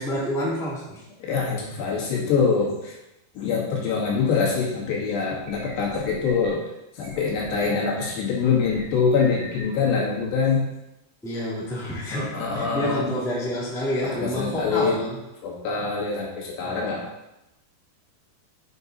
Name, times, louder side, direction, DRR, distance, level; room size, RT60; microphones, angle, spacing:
voice 1, 0.0-1.0 11.2-15.2 16.6-17.0, equal, ahead, -7 dB, 1.5 m, -28 dB
voice 2, 1.2-2.9 3.4-6.6 7.0-10.7 12.1-13.1 14.2-15.0 15.4-17.0, left 5 dB, 80° left, -3 dB, 4.1 m, -24 dB
sound 1, 5.4-6.5 7.0-8.1 8.6-9.6, right 2 dB, 80° right, 4.7 m, -40 dB
8.1 x 6.7 x 4.1 m, 0.91 s
omnidirectional pair, 4.8 m